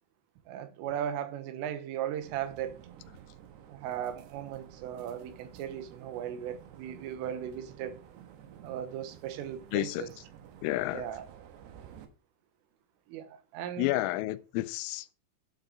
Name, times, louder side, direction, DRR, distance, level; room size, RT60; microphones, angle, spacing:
voice 1, 0.5-2.8 3.7-8.0 8.6-10.1 10.9-11.3 13.1-13.9, right 10 dB, 85° right, 3.8 m, -37 dB
sound 1, 2.2-12.1, right 9 dB, 70° right, 3.0 m, -52 dB
voice 2, 9.7-10.1 10.6-11.1 13.8-15.1, left 17 dB, 90° left, 3.3 m, -30 dB
12.5 x 6.6 x 4.8 m
omnidirectional pair, 5.7 m